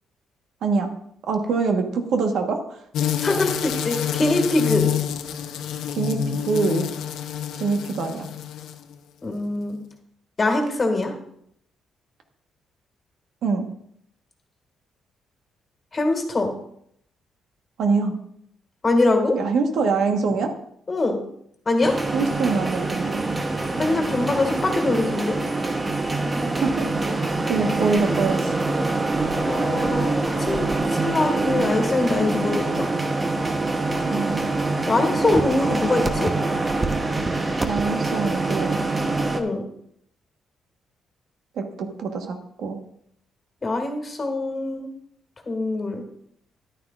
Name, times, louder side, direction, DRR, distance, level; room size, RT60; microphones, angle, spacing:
voice 1, 1.3-2.8 3.0-3.1 6.0-6.9 7.6-8.3 13.4-13.7 17.8-18.1 19.3-20.5 22.1-23.2 26.3-27.2 27.5-28.5 34.1-34.5 37.6-38.8 41.6-42.8, right 4 dB, 75° right, 5 dB, 1.2 m, -24 dB
sound 1, 2.9-8.9, left 9 dB, 80° left, 0.6 m, -27 dB
voice 2, 3.2-4.9 9.2-9.8 10.4-11.1 15.9-16.5 18.8-19.3 20.9-21.1 21.6-21.9 23.7-25.4 29.4-30.1 30.4-30.7 30.9-32.9 34.9-36.3 39.3-39.6 43.6-44.9 45.4-46.0, left 2 dB, 30° left, 4 dB, 1.8 m, -23 dB
sound 2, 21.8-39.4, right 2 dB, 20° right, 0.9 m, -25 dB
11.5 x 9.4 x 2.4 m, 0.70 s
cardioid pair, 90°, 0 cm